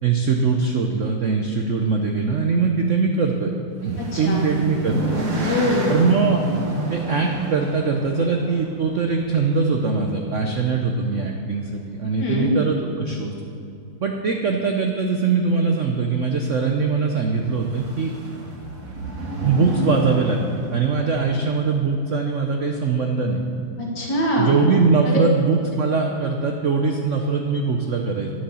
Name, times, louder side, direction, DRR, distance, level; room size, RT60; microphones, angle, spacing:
voice 1, 0.0-3.5 3.8-5.2 5.9-6.4 6.9-13.3 14.0-18.1 19.4-23.4 24.4-28.3, right 4 dB, 65° right, 3 dB, 0.7 m, -22 dB
sound 1, 3.8-9.9 11.0-11.4 11.7-11.8 12.1-12.2 17.3-21.7, right 1 dB, 45° right, 1.7 m, -30 dB
voice 2, 4.0-4.5 5.4-5.9 12.2-12.5 23.8-24.5 25.1-25.2, left 1 dB, 65° left, -2 dB, 2.7 m, -23 dB
10.0 x 7.9 x 6.9 m, 2.5 s
omnidirectional pair, 2.2 m